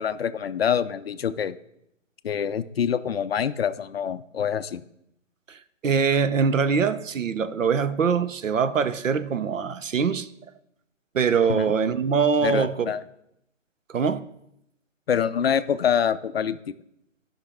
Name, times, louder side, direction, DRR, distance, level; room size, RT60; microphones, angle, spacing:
voice 1, 0.0-1.6 2.2-4.8 11.5-11.7 12.4-13.0 15.1-16.6, left 8 dB, 50° left, 0.5 m, -25 dB
voice 2, 5.8-10.3 11.1-12.9 13.9-14.2, right 6 dB, 75° right, 0.7 m, -23 dB
12.5 x 5.7 x 3.5 m
figure-of-eight pair, 140°, 39 cm